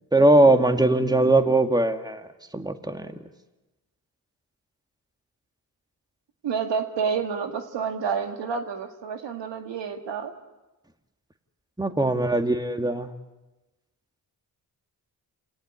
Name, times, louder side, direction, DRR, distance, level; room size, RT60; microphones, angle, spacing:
voice 1, 0.1-2.3 2.5-3.1 11.8-13.1, right 2 dB, 10° right, 7 dB, 2.0 m, -20 dB
voice 2, 6.4-10.3, right 6 dB, 85° right, 6 dB, 2.1 m, -29 dB
28.0 x 18.0 x 9.8 m, 1.1 s
cardioid pair, 60°, 42 cm